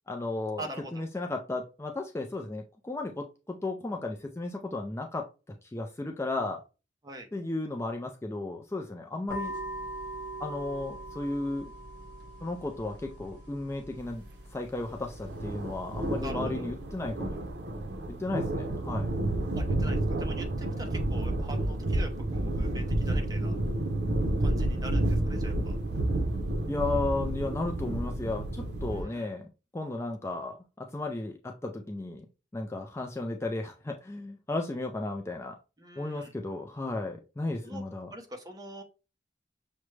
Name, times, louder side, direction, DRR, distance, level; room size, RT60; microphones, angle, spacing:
voice 1, 0.1-5.2 5.6-6.6 7.3-9.6 10.4-11.7 12.4-14.2 14.5-17.4 18.1-19.1 26.7-32.3 32.5-35.6 36.0-38.1, left 2 dB, 15° left, 2 dB, 0.4 m, -34 dB
voice 2, 0.6-1.0 7.0-7.3 16.2-16.4 19.5-23.6 24.4-25.8 28.9-29.3 35.8-36.3 37.6-37.8 38.1-38.8, right 1 dB, 20° right, 4 dB, 0.7 m, -43 dB
sound 1, 9.3-16.3, right 1 dB, 50° right, 1.9 m, -42 dB
sound 2, 15.1-29.0, right 1 dB, 80° right, 0.6 m, -30 dB
6.1 x 2.1 x 3.2 m, 0.30 s
head